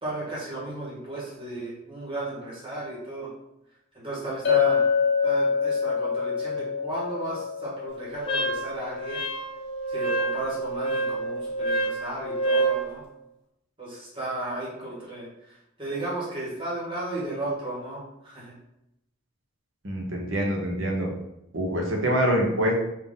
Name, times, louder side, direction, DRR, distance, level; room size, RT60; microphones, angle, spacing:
voice 1, 0.0-3.3 3.9-4.8 5.2-9.2 9.9-13.0 13.8-18.5, right 2 dB, 25° right, -7 dB, 1.6 m, -34 dB
Chink clink, 4.4-8.9, left 6 dB, 55° left, 0.8 m, -25 dB
Wind instrument woodwind instrument, 8.3-12.8, right 2 dB, 25° left, 0.7 m, -28 dB
voice 2, 19.8-21.1 21.5-22.8, equal, 65° right, 0 dB, 1.0 m, -25 dB
4.0 x 2.8 x 3.7 m, 0.83 s
head